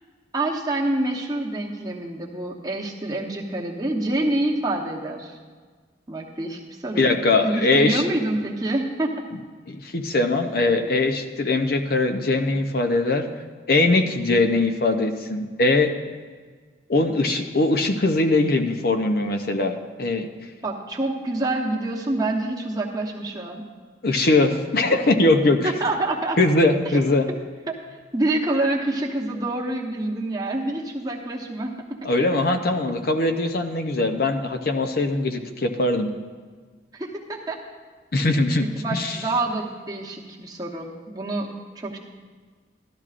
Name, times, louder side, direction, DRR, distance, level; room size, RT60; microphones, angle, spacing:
voice 1, 0.3-5.4 6.1-7.1 7.4-9.2 20.6-23.6 25.6-26.4 26.8-27.0 27.3-27.4 27.7-27.8 28.1-32.0 36.9-37.6 38.6-42.0, right 2 dB, 20° right, -1 dB, 0.9 m, -27 dB
voice 2, 7.0-8.0 9.7-13.3 13.7-15.9 16.9-20.3 24.0-25.7 26.4-27.3 32.0-36.1 38.1-39.2, left 2 dB, 55° left, 7 dB, 0.6 m, -21 dB
13.5 x 12.0 x 2.5 m, 1.5 s
head